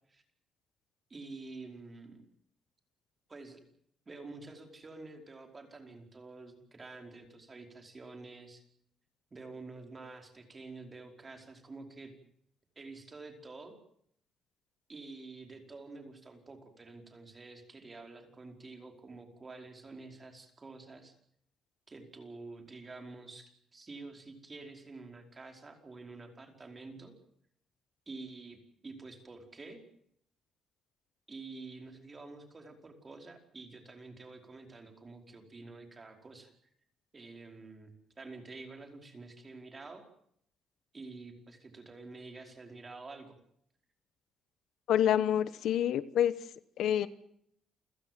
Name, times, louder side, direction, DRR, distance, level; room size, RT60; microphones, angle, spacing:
voice 1, 1.1-2.2 3.3-3.6 4.1-8.6 9.3-12.1 12.7-13.8 14.9-21.1 21.9-27.1 28.1-29.8 31.3-36.5 37.1-40.0 40.9-43.3, right 3 dB, 25° right, 4 dB, 5.0 m, -48 dB
voice 2, 44.9-46.3 46.8-47.1, left 10 dB, 75° left, 15 dB, 1.1 m, -27 dB
29.0 x 16.0 x 7.7 m, 0.70 s
cardioid pair, 115°, 0 cm